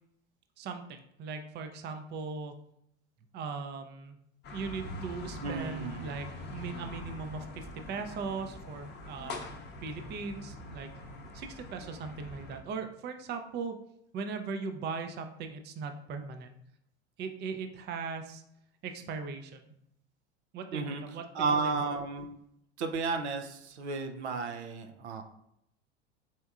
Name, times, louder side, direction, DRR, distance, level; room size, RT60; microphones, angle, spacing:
voice 1, 0.6-2.5 3.3-4.2 4.5-9.4 9.8-10.9 11.3-13.7 14.1-16.5 17.2-18.4 18.8-19.7 20.5-21.9, right 5 dB, 30° right, 6 dB, 0.5 m, -39 dB
sound 1, 4.4-12.6, left 1 dB, 30° left, 0.7 m, -44 dB
voice 2, 5.4-6.1 20.7-21.0 21.3-22.3 22.8-25.2, right 4 dB, 80° right, 5 dB, 0.6 m, -33 dB
4.3 x 3.4 x 2.4 m, 0.74 s
hypercardioid pair, 85°, 33 cm